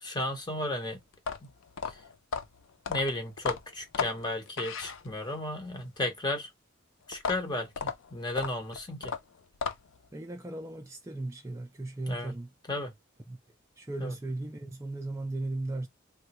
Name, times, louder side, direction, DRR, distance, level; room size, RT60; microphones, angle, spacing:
voice 1, 0.0-1.0 1.4-1.5 1.9-2.0 2.9-6.5 7.1-9.1 12.1-12.3 12.7-12.9 14.0-14.1, left 1 dB, 20° left, 0.9 m, -34 dB
sound 1, 1.1-5.4 7.1-10.1, left 5 dB, 70° left, 0.4 m, -35 dB
voice 2, 10.1-12.5 13.3-13.4 13.8-15.9, right 2 dB, 15° right, 0.4 m, -36 dB
3.2 x 2.2 x 2.9 m
head